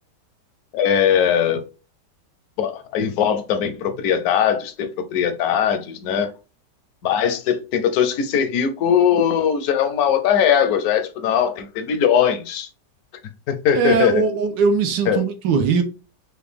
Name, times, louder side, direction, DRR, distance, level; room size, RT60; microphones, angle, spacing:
voice 1, 0.7-1.6 2.6-6.3 7.0-12.7 13.5-14.2 15.1-15.2, left 8 dB, 70° left, 1.0 m, -20 dB
voice 2, 13.7-15.8, right 6 dB, 90° right, 1.4 m, -20 dB
4.9 x 2.2 x 3.3 m
omnidirectional pair, 1.9 m